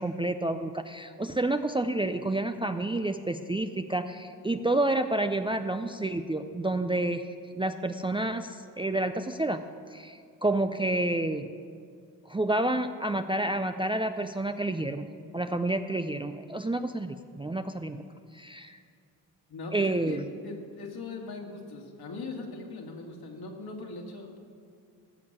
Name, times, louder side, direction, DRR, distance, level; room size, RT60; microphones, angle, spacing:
voice 1, 0.0-7.3 7.6-9.6 9.9-11.5 12.3-18.0 18.3-18.8 19.7-20.2, right 2 dB, 10° right, 8 dB, 0.5 m, -29 dB
voice 2, 19.5-24.4, left 3 dB, 60° left, 1 dB, 2.2 m, -40 dB
13.5 x 7.0 x 6.7 m, 2.2 s
supercardioid pair, 55°, 43 cm